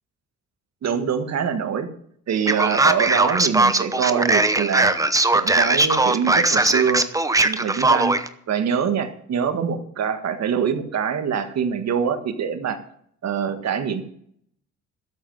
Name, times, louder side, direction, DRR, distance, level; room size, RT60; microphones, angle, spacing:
voice 1, 0.8-1.9 2.3-5.0 5.3-7.1 7.4-8.2 8.5-12.8 13.2-14.0, right 7 dB, 60° right, 7 dB, 1.8 m, -24 dB
Male speech man speaking, 2.5-8.3, right 2 dB, 10° right, 0.9 m, -19 dB
13.0 x 7.8 x 7.5 m, 0.67 s
cardioid pair, 90°, 30 cm